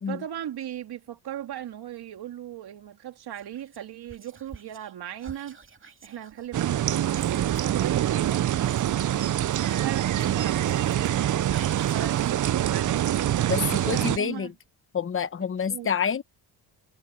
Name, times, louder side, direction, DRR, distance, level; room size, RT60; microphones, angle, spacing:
voice 1, 0.1-5.6 6.0-8.5 9.7-11.4 11.9-14.5 15.6-15.9, right 11 dB, 60° right, 2.5 m, -37 dB
Whispering, 3.3-4.9 5.2-7.9 8.6-12.6 12.9-14.7, right 5 dB, 30° right, 2.6 m, -47 dB
sound 1, 6.5-14.2, right 12 dB, 45° right, 0.6 m, -25 dB
voice 2, 13.5-14.5 14.9-16.2, left 7 dB, 30° left, 1.0 m, -28 dB
cardioid pair, 105°, 43 cm